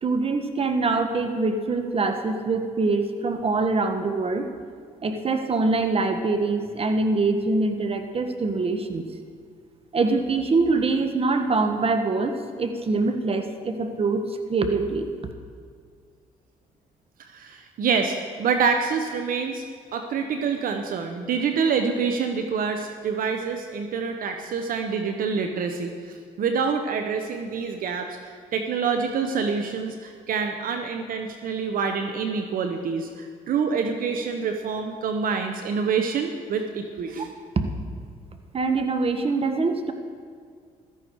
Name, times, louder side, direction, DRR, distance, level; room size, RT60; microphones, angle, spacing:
voice 1, 0.0-4.5 5.0-9.1 9.9-15.1 37.5-37.7 38.5-39.9, right 3 dB, 40° right, 7 dB, 1.5 m, -24 dB
voice 2, 17.3-19.6 19.9-37.3, right 5 dB, 70° right, 5 dB, 1.1 m, -26 dB
15.5 x 13.5 x 4.8 m, 2.1 s
cardioid pair, 75°, 15 cm